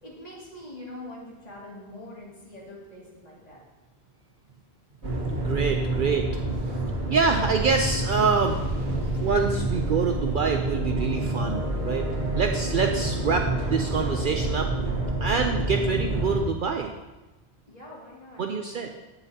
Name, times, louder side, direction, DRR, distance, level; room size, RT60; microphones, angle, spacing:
voice 1, 0.0-3.6 17.7-18.9, left 1 dB, 35° left, -5 dB, 2.5 m, -44 dB
sound 1, 5.0-16.4, right 2 dB, 75° right, 1.7 m, -28 dB
voice 2, 5.3-6.3 6.7-6.8 7.1-12.1 12.4-14.7 15.2-16.9 18.4-18.9, right 5 dB, 60° right, 4 dB, 0.6 m, -26 dB
16.0 x 5.8 x 2.8 m, 1.1 s
omnidirectional pair, 1.1 m